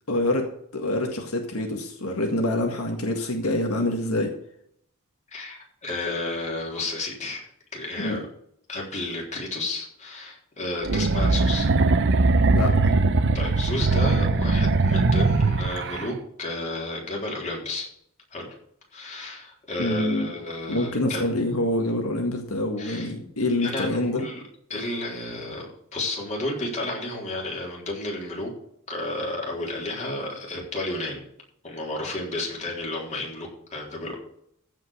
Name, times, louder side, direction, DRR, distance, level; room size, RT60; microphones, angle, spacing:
voice 1, 0.1-4.3 8.0-8.2 12.5-12.9 19.8-20.3 20.7-24.2, left 1 dB, 90° left, 3 dB, 1.8 m, -26 dB
voice 2, 5.3-7.5 7.7-8.2 8.7-11.7 13.3-17.9 18.3-18.5 18.9-21.3 22.8-23.1 23.6-24.4 24.7-28.5 28.9-31.2 31.6-34.2, left 2 dB, 35° left, -2 dB, 3.8 m, -32 dB
sound 1, 10.8-16.1, right 3 dB, 60° right, 0.8 m, -21 dB
15.0 x 5.3 x 6.6 m, 0.71 s
head